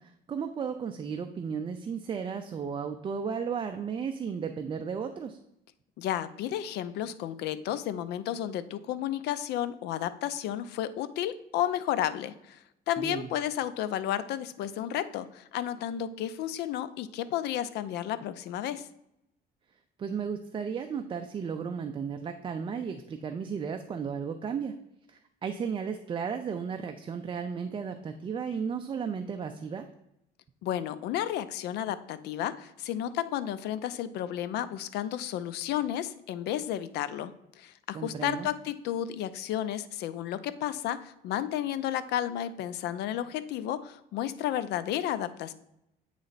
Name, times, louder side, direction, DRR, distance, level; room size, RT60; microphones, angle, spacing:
voice 1, 0.0-5.4 13.0-13.3 20.0-24.7 25.1-29.9 37.9-38.5, right 6 dB, 30° right, 6 dB, 0.4 m, -34 dB
voice 2, 6.0-12.6 12.9-18.9 30.6-45.5, left 11 dB, 80° left, 14 dB, 0.5 m, -32 dB
8.9 x 3.2 x 4.0 m, 0.82 s
cardioid pair, 110°, 17 cm